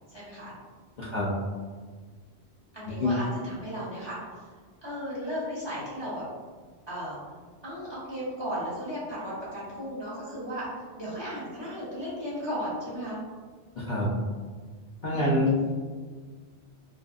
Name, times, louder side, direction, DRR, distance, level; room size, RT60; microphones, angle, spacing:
voice 1, 0.1-0.5 1.0-1.2 2.7-4.2 4.8-6.2 6.9-7.2 7.6-10.7 11.0-13.2 15.1-15.7, equal, 25° right, -9 dB, 0.9 m, -35 dB
voice 2, 1.0-1.3 3.0-3.1 13.8-14.1 15.0-15.7, left 2 dB, 50° left, -8 dB, 0.6 m, -26 dB
2.8 x 2.5 x 2.3 m, 1.5 s
omnidirectional pair, 1.2 m